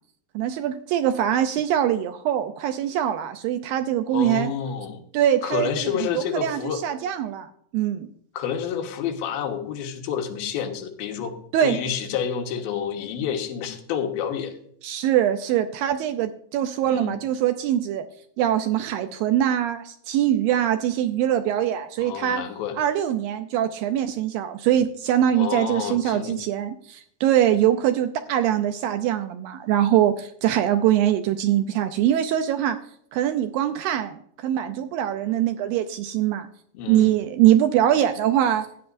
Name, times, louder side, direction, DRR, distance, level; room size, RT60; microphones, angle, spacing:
voice 1, 0.4-4.5 5.1-8.1 11.5-11.8 14.8-18.0 18.4-22.4 22.8-32.8 33.1-36.5 36.9-38.7, right 11 dB, 85° right, 8 dB, 2.0 m, -23 dB
voice 2, 4.1-5.0 5.4-6.8 8.3-11.4 11.6-14.5 16.9-17.1 22.0-22.8 25.3-26.4 36.7-37.2, left 8 dB, 70° left, 3 dB, 2.9 m, -29 dB
16.0 x 9.4 x 2.6 m, 0.65 s
omnidirectional pair, 4.7 m